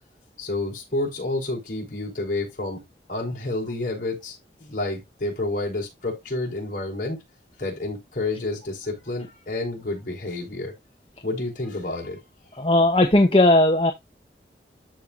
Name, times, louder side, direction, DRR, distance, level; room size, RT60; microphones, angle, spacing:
voice 1, 0.4-2.8 3.1-7.2 7.6-10.7 11.2-12.2, left 2 dB, 50° left, 5.3 m, -29 dB
voice 2, 12.6-13.9, left 1 dB, 30° left, 1.0 m, -17 dB
13.5 x 4.5 x 2.5 m
head